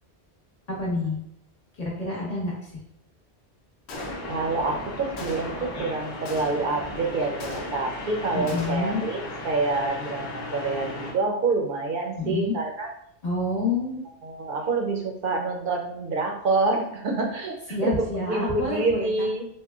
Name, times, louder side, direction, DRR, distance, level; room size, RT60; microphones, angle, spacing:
voice 1, 0.7-1.2 1.8-2.7 8.3-9.0 12.2-12.5 13.2-14.0 17.7-19.3, left 2 dB, 40° left, -5 dB, 1.0 m, -28 dB
Gunshot gunfire, 3.9-4.6 5.2-5.7 6.2-6.9 7.4-8.1 8.5-9.0, left 2 dB, 90° left, 0.9 m, -39 dB
sound 1, 3.9-11.1, left 1 dB, 55° left, 0.7 m, -36 dB
voice 2, 4.3-12.9 14.2-19.5, right 3 dB, 60° right, 1 dB, 0.7 m, -27 dB
3.5 x 2.2 x 2.3 m, 0.72 s
omnidirectional pair, 1.1 m